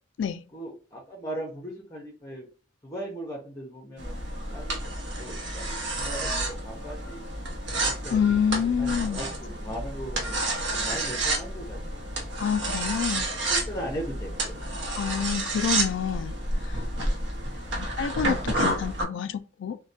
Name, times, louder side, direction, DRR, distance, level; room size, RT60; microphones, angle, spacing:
voice 1, 0.5-2.5 2.8-4.2 4.5-7.2 7.8-10.4 10.7-12.1 13.1-13.2 13.5-14.6, equal, 20° left, 0.6 m, -38 dB
sound 1, 4.0-19.0, right 2 dB, 65° right, 0.8 m, -30 dB
voice 2, 8.1-9.2 12.4-13.3 15.0-16.3 16.7-17.1 17.8-19.8, left 7 dB, 65° left, 0.3 m, -27 dB
3.1 x 2.1 x 2.7 m
head